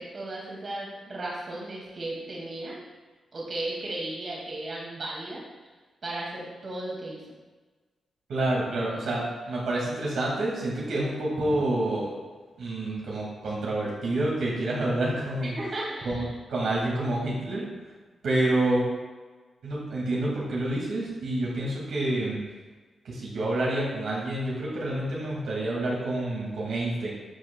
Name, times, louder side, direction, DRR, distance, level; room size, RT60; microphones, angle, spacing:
voice 1, 0.0-2.8 3.3-5.4 6.0-7.2 15.6-16.2, right 2 dB, 50° right, -4 dB, 2.1 m, -35 dB
voice 2, 8.3-12.1 12.6-15.5 16.0-17.6 18.2-18.9 19.6-22.4 23.0-27.1, right 1 dB, 80° right, -5 dB, 2.0 m, -28 dB
11.0 x 5.5 x 2.2 m, 1.3 s
cardioid pair, 80°, 0 cm